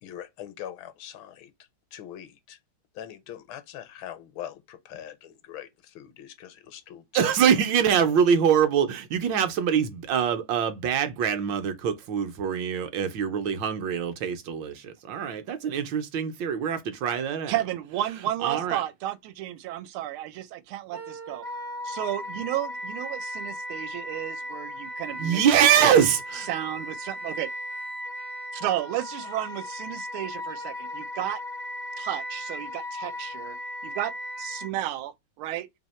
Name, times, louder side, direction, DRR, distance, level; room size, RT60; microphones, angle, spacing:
voice 1, 0.0-2.6 2.9-7.3, left 10 dB, 80° left, 1.4 m, -42 dB
voice 2, 7.1-17.5 18.4-18.8 25.2-26.5, right 8 dB, 70° right, 1.2 m, -24 dB
voice 3, 17.5-21.4 21.8-25.6 26.3-27.5 28.5-31.4 32.0-33.6 33.8-34.1 34.4-35.7, right 13 dB, 90° right, 1.5 m, -32 dB
Wind instrument woodwind instrument, 20.9-34.7, left 1 dB, 50° right, 0.5 m, -36 dB
3.4 x 2.7 x 4.1 m
omnidirectional pair, 2.3 m